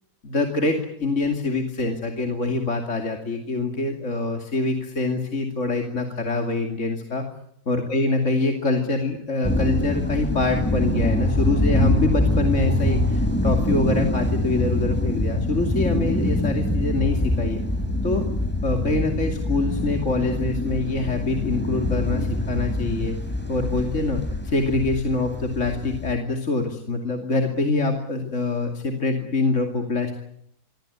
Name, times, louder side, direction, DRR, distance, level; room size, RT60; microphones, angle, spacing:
voice 1, 0.2-7.2 7.7-17.6 18.0-18.2 18.6-23.2 23.5-30.2, left 3 dB, 40° left, 3 dB, 2.8 m, -25 dB
sound 1, 9.4-26.1, left 1 dB, 5° left, 4.2 m, -24 dB
25.5 x 23.0 x 8.3 m, 0.73 s
omnidirectional pair, 2.1 m